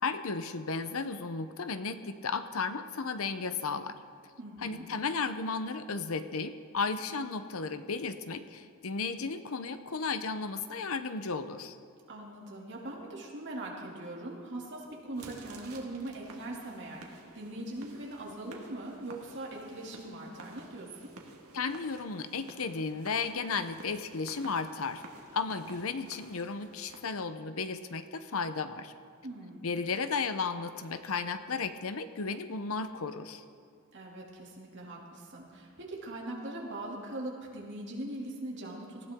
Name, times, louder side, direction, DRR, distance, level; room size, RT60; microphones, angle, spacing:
voice 1, 0.0-4.0 4.6-11.8 21.5-25.0 25.3-28.9 29.6-33.4, left 4 dB, 75° left, 11 dB, 0.7 m, -34 dB
voice 2, 4.4-4.9 12.1-21.1 29.2-29.7 33.9-39.1, right 1 dB, 55° right, -2 dB, 2.6 m, -41 dB
sound 1, 15.1-27.0, right 2 dB, 85° right, 1.7 m, -52 dB
19.0 x 15.0 x 3.7 m, 2.2 s
head